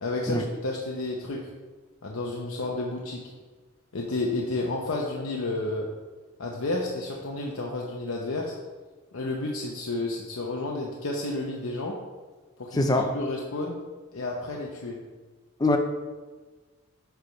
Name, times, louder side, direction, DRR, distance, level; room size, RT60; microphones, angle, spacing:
voice 1, 0.0-1.4 2.0-3.2 3.9-5.9 6.4-8.5 9.1-11.9 12.6-13.8 14.1-15.0, left 2 dB, 75° left, -1 dB, 0.8 m, -31 dB
voice 2, 12.7-13.2 15.6-15.8, left 2 dB, 20° left, 5 dB, 0.4 m, -23 dB
9.0 x 3.5 x 5.2 m, 1.3 s
head